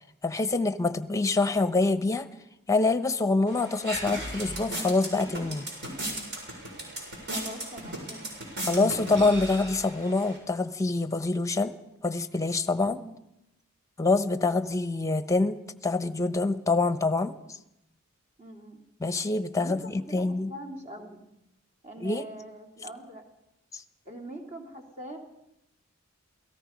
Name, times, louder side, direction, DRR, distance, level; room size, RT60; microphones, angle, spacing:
voice 1, 0.2-2.3 2.7-5.7 8.7-11.7 12.0-13.0 14.0-17.3 19.0-20.5 22.0-22.2 23.7-23.8, left 3 dB, 15° left, 10 dB, 0.9 m, -26 dB
sound 1, 3.5-10.4, right 1 dB, 55° right, 6.7 m, -37 dB
voice 2, 7.2-8.5 12.8-13.1 18.4-18.8 19.6-21.3 21.8-23.2 24.0-25.2, right 1 dB, 35° right, 1 dB, 3.3 m, -43 dB
28.0 x 18.0 x 5.2 m, 0.86 s
head